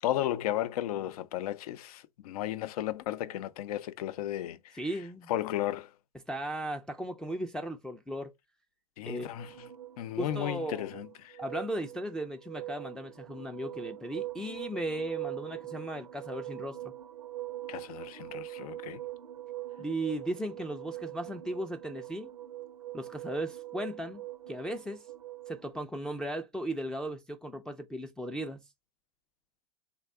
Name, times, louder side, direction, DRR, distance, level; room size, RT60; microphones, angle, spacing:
voice 1, 0.0-4.8 5.3-5.9 9.0-9.7 10.0-11.4 17.7-19.0, left 12 dB, 70° left, 0.5 m, -34 dB
voice 2, 4.7-5.3 6.3-8.3 9.1-9.3 10.2-10.9 11.4-16.9 19.8-22.3 22.9-24.2 24.5-25.1 25.5-28.7, right 1 dB, 5° left, 0.4 m, -36 dB
sound 1, 9.4-25.8, right 14 dB, 85° right, 0.6 m, -43 dB
3.5 x 2.2 x 3.5 m
hypercardioid pair, 95°, 20 cm